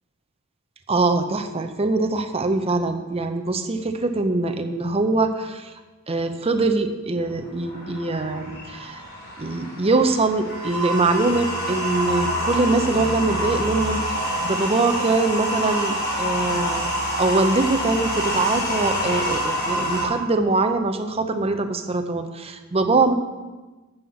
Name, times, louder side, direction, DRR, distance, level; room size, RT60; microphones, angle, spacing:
voice 1, 0.9-5.7 6.1-9.1 9.4-14.2 14.4-23.1, right 3 dB, 30° right, 7 dB, 0.6 m, -23 dB
sound 1, 7.2-20.1, equal, 55° left, 3.2 m, -27 dB
8.0 x 5.5 x 7.0 m, 1.2 s
head